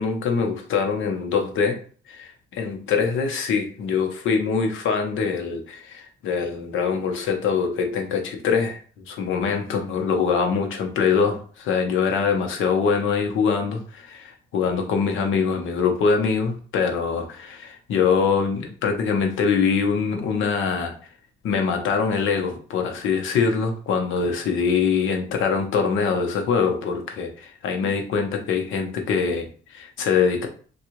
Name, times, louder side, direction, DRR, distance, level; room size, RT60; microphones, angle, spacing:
voice 1, 0.0-1.8 2.1-20.9 21.4-30.5, left 5 dB, 80° left, 4 dB, 0.8 m, -23 dB
3.5 x 2.3 x 3.0 m, 0.42 s
cardioid pair, 90°, 20 cm